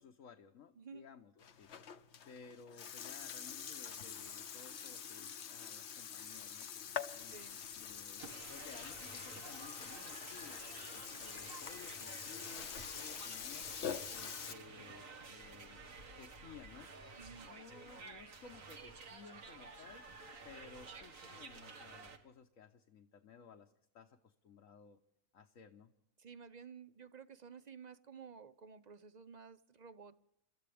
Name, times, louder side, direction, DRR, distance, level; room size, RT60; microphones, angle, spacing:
voice 1, 0.0-1.7 2.2-7.4 7.8-8.2 8.5-13.7 14.1-15.9 16.2-16.9 17.4-20.0 20.4-25.0 25.3-25.9, left 6 dB, 70° left, 1.4 m, -57 dB
voice 2, 0.8-1.1 7.3-7.6 17.2-17.5 26.2-30.2, right 6 dB, 45° right, 0.6 m, -53 dB
Burping eructation, 1.4-14.5, left 8 dB, 55° left, 1.1 m, -45 dB
sound 1, 7.2-14.9, left 4 dB, 90° left, 2.1 m, -66 dB
sound 2, 8.2-22.2, right 4 dB, 70° right, 2.1 m, -52 dB
29.5 x 14.0 x 3.5 m
omnidirectional pair, 1.4 m